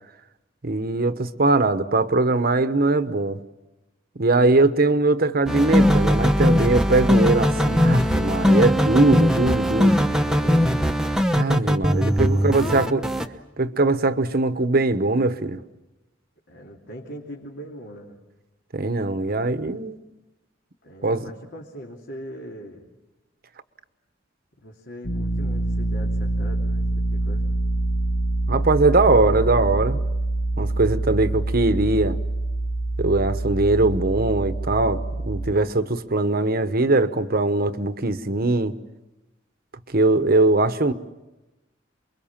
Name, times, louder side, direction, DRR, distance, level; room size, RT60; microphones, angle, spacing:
voice 1, 0.6-3.4 4.1-10.0 11.3-13.0 13.6-15.6 18.7-20.0 21.0-21.3 28.5-30.0 30.6-32.2 33.0-38.7 39.9-40.9, right 2 dB, 50° right, 1.1 m, -21 dB
sound 1, 5.5-13.2, equal, 5° right, 1.0 m, -20 dB
voice 2, 10.3-11.0 12.3-13.1 16.5-18.2 20.8-22.9 24.6-27.5, equal, 65° left, 2.9 m, -40 dB
sound 2, 25.0-35.5, right 2 dB, 85° left, 2.2 m, -25 dB
29.0 x 22.5 x 7.4 m
head